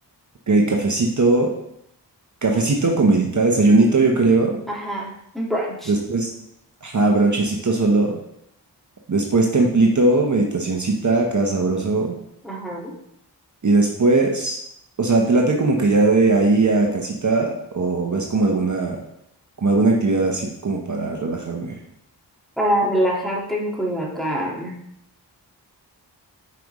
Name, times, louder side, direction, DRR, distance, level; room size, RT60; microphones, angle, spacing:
voice 1, 0.5-1.5 2.4-4.6 5.9-6.3 6.8-8.2 9.1-12.1 13.6-14.6 15.0-19.0 19.6-21.8, right 3 dB, 45° right, 0 dB, 0.9 m, -19 dB
voice 2, 4.7-5.9 12.4-12.9 22.6-24.7, equal, ahead, -3 dB, 1.8 m, -24 dB
5.9 x 5.1 x 3.1 m, 0.75 s
cardioid pair, 50°, 42 cm